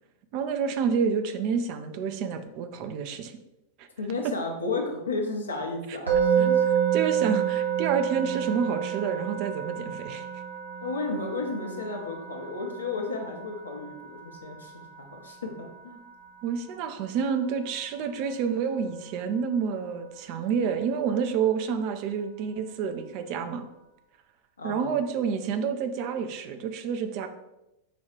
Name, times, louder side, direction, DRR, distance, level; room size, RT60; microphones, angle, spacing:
voice 1, 0.3-3.4 3.8-3.9 5.9-6.0 6.4-6.5 6.9-10.3 16.4-23.7 24.6-27.3, right 6 dB, 45° right, 8 dB, 0.4 m, -29 dB
voice 2, 4.0-6.6 10.8-16.0 24.6-25.0, left 3 dB, 75° left, 2 dB, 0.8 m, -33 dB
Musical instrument, 6.1-17.2, right 9 dB, 85° right, 1.1 m, -29 dB
5.0 x 2.4 x 4.3 m, 0.92 s
figure-of-eight pair, 90°, 0 cm